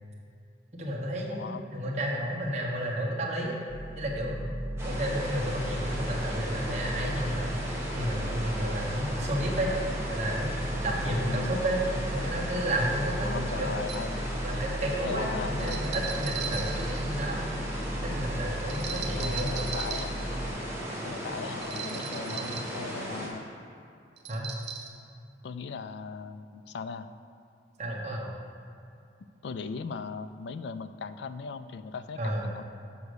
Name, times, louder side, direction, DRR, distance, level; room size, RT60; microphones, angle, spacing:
voice 1, 0.7-3.6 4.0-4.5 4.8-7.5 7.9-9.7 10.1-10.5 10.8-11.8 12.1-13.7 14.4-17.4 18.0-19.7 22.3-22.5 24.3-24.5 27.8-28.3 32.2-32.4, right 1 dB, 40° right, -2 dB, 1.1 m, -32 dB
voice 2, 1.3-1.6 11.2-11.6 13.2-14.3 15.0-15.9 18.9-20.2 21.0-23.4 25.4-27.1 29.4-32.6, left 5 dB, 75° left, 12 dB, 0.3 m, -38 dB
sound 1, 3.7-20.5, equal, 25° left, 0.6 m, -36 dB
sound 2, 4.8-23.3, equal, 15° right, 1.2 m, -36 dB
sound 3, 13.9-14.1 15.6-17.4 18.7-20.2 21.6-22.8 24.2-24.9, right 7 dB, 80° right, 0.9 m, -38 dB
7.0 x 5.1 x 6.5 m, 2.5 s
head